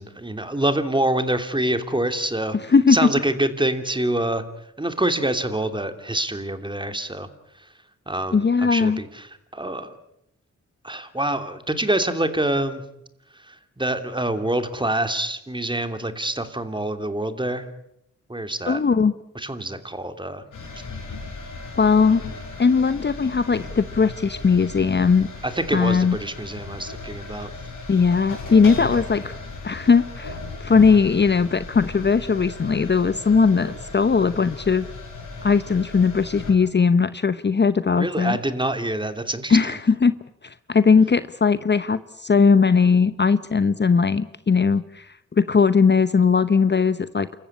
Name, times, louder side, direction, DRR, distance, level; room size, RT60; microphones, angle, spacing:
voice 1, 0.0-2.6 2.9-4.4 4.8-7.3 8.1-9.9 10.8-12.8 13.5-17.6 18.3-18.8 19.3-20.4 25.4-27.5 38.0-39.7, right 1 dB, 15° right, 9 dB, 3.0 m, -26 dB
voice 2, 2.7-3.1 8.3-9.0 18.7-19.1 21.8-22.2 22.6-25.3 25.7-26.2 27.9-29.3 29.6-34.9 35.4-38.4 39.5-40.2 40.4-45.1 45.4-47.4, left 5 dB, 35° left, 14 dB, 0.8 m, -19 dB
sound 1, 20.5-36.5, left 3 dB, 90° left, 7.2 m, -36 dB
28.5 x 15.0 x 10.0 m, 0.81 s
cardioid pair, 65°, 30 cm